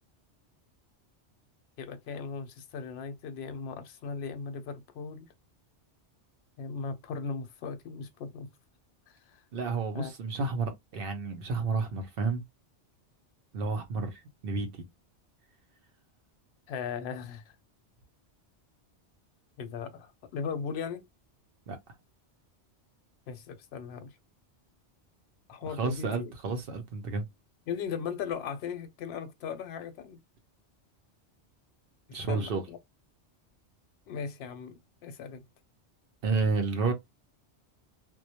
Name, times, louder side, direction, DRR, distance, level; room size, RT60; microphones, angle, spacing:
voice 1, 1.8-5.3 6.6-8.5 9.1-9.4 9.9-10.1 16.7-17.6 19.6-21.1 23.3-24.2 25.5-26.3 27.7-30.2 32.1-32.8 34.1-35.4, left 6 dB, 70° left, 0.8 m, -38 dB
voice 2, 9.5-12.4 13.5-14.8 21.7-21.8 25.8-27.2 32.1-32.6 36.2-36.9, right 4 dB, 60° right, 0.7 m, -31 dB
2.2 x 2.0 x 2.8 m
omnidirectional pair, 1.2 m